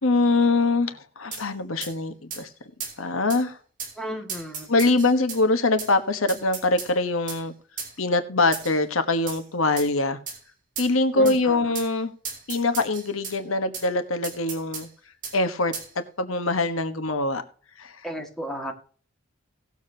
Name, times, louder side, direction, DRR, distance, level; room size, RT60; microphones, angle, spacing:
voice 1, 0.0-2.5 3.0-3.6 4.7-7.5 8.0-10.2 10.8-12.1 12.5-14.9 15.3-17.4 17.8-18.0, left 3 dB, 85° left, 9 dB, 1.3 m, -23 dB
sound 1, 1.3-1.5 1.8-1.9 2.3-2.4 2.8-3.0 3.3-3.4 3.8-3.9 4.3-5.4 5.8-5.9 6.3-6.9 7.3-7.4 7.8-7.9 8.5-8.8 9.3-9.4 9.8-9.9 10.3-10.4 10.8-10.9 11.3-11.4 11.7-11.9 12.2-13.4 13.7-13.9 14.2-14.9 15.2-15.4 15.7-15.9, right 5 dB, 40° right, 3.1 m, -35 dB
voice 2, 4.0-4.7 11.1-11.7 18.0-18.7, equal, ahead, 1 dB, 1.9 m, -34 dB
18.0 x 7.3 x 2.8 m, 0.43 s
head